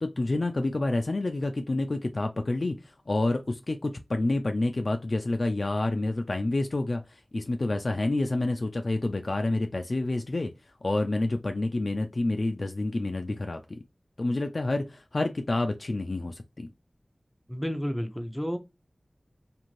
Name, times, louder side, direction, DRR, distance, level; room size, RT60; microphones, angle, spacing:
voice 1, 0.0-10.5 10.8-13.6 14.2-16.7, left 2 dB, 65° left, 0.3 m, -28 dB
voice 2, 17.5-18.6, equal, 5° left, 0.5 m, -31 dB
2.6 x 2.5 x 3.0 m
wide cardioid pair, 60°, 0 cm